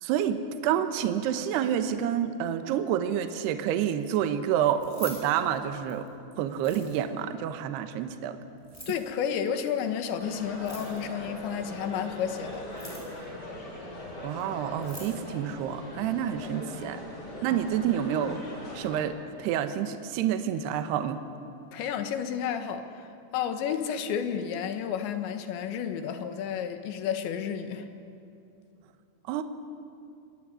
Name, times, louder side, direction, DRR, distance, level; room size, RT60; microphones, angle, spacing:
voice 1, 0.0-6.1 6.4-8.4 14.2-17.0 17.4-18.4 18.7-21.2 29.3-29.4, right 9 dB, 75° right, 9 dB, 3.1 m, -28 dB
Keys jangling, 4.7-6.1 6.5-7.2 8.6-9.1 10.5-11.2 12.6-13.2 14.4-14.5 14.7-15.2, equal, 5° left, 6.1 m, -44 dB
voice 2, 8.9-12.7 17.5-17.6 21.7-27.9, left 8 dB, 85° left, 8 dB, 3.8 m, -31 dB
sound 1, 10.2-19.0, left 1 dB, 25° left, 3.8 m, -41 dB
26.0 x 20.0 x 9.8 m, 2.6 s
omnidirectional pair, 5.1 m